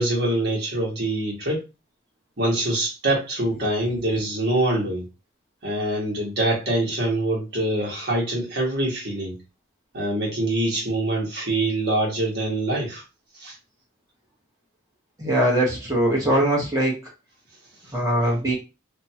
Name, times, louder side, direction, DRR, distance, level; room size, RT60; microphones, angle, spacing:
voice 1, 0.0-1.6 2.4-5.0 5.6-9.3 9.9-13.0 13.4-13.5, right 1 dB, 50° right, -4 dB, 1.3 m, -24 dB
voice 2, 15.2-17.0 17.9-18.6, right 1 dB, 15° right, -4 dB, 1.1 m, -21 dB
2.7 x 2.3 x 2.8 m, 0.28 s
head